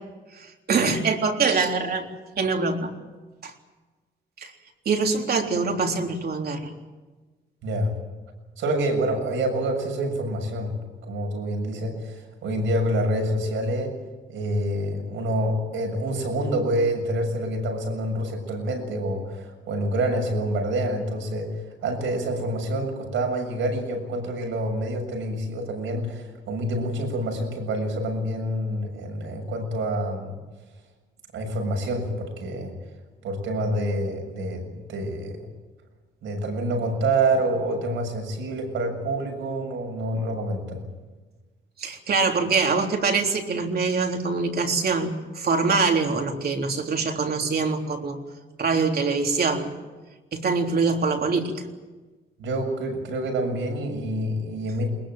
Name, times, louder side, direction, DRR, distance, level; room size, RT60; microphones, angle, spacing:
voice 1, 0.3-2.0 2.4-2.9 3.4-3.5 4.4-4.5 4.9-6.7 41.8-48.2 48.6-49.7 50.3-51.6, right 4 dB, 50° right, 2 dB, 3.7 m, -24 dB
voice 2, 7.6-7.9 8.6-10.7 11.0-14.0 14.3-30.4 31.3-32.7 33.2-35.5 36.2-40.8 52.4-54.9, right 1 dB, 80° right, 3 dB, 7.2 m, -27 dB
22.0 x 20.5 x 9.0 m, 1.2 s
cardioid pair, 90°, 20 cm